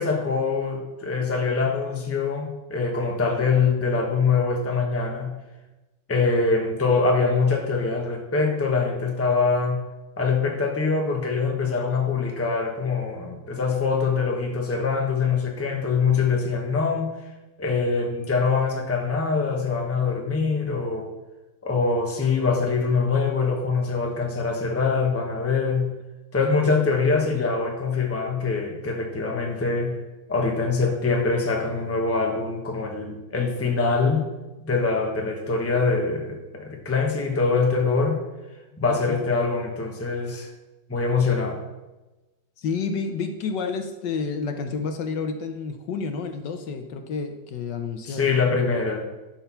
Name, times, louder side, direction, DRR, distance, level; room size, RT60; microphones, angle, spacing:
voice 1, 0.0-5.3 6.1-9.8 10.2-17.1 17.6-21.1 21.6-25.9 26.3-30.0 30.3-34.2 34.6-38.2 38.8-40.5 40.9-41.6 48.1-49.0, left 4 dB, 10° left, 1 dB, 0.8 m, -24 dB
voice 2, 38.8-39.2 42.6-48.4, left 5 dB, 70° left, 7 dB, 1.3 m, -30 dB
11.5 x 4.5 x 5.6 m, 1.1 s
omnidirectional pair, 2.1 m